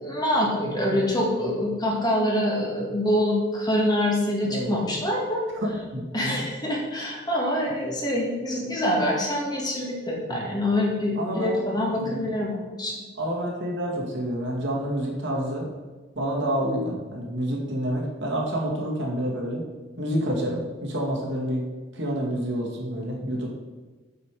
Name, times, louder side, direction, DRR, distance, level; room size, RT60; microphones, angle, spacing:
voice 1, 0.0-5.4 6.1-13.0, left 1 dB, 20° left, -2 dB, 2.1 m, -25 dB
voice 2, 4.4-4.8 5.5-6.4 10.3-10.5 11.2-11.6 11.9-12.2 13.2-15.7 16.2-19.6 20.0-21.7 21.9-23.5, equal, 60° right, -2 dB, 2.3 m, -28 dB
8.3 x 6.8 x 5.0 m, 1.3 s
head